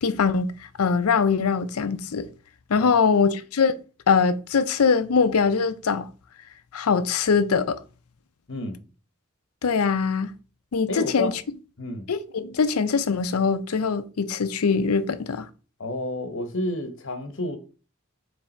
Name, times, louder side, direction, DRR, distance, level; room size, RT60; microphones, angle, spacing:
voice 1, 0.0-2.3 2.7-3.7 4.1-6.1 6.7-7.8 9.6-10.3 10.7-11.3 12.1-15.5, left 5 dB, 85° left, 0.5 m, -22 dB
voice 2, 8.5-8.8 10.9-11.4 11.8-12.1 15.8-17.6, left 2 dB, 60° left, 1.1 m, -30 dB
7.1 x 3.4 x 4.4 m
head